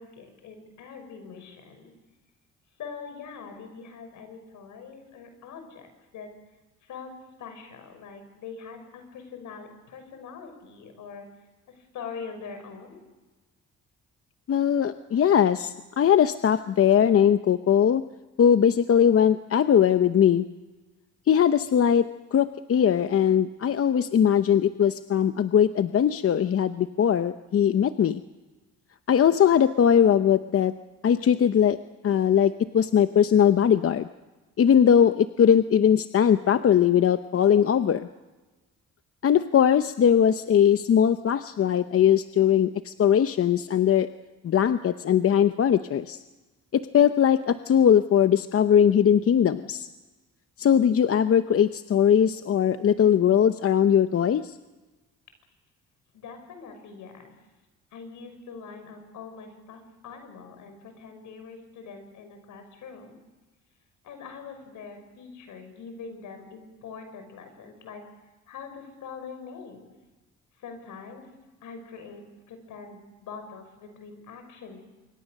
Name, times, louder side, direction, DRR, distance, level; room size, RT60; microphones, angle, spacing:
voice 1, 0.0-1.9 2.8-6.3 6.8-7.1 7.4-11.3 11.7-13.0 56.1-57.3 57.9-63.2 64.0-69.9 70.5-71.3 71.6-74.8, left 5 dB, 80° left, 7 dB, 6.1 m, -43 dB
voice 2, 14.5-18.0 18.4-20.5 21.3-28.2 29.1-30.7 31.0-31.8 32.0-34.1 34.6-38.1 39.2-44.1 44.4-46.2 46.7-49.9 50.6-54.5, left 8 dB, 50° left, 10 dB, 0.8 m, -20 dB
26.0 x 24.0 x 6.6 m, 1.2 s
cardioid pair, 90°, 30 cm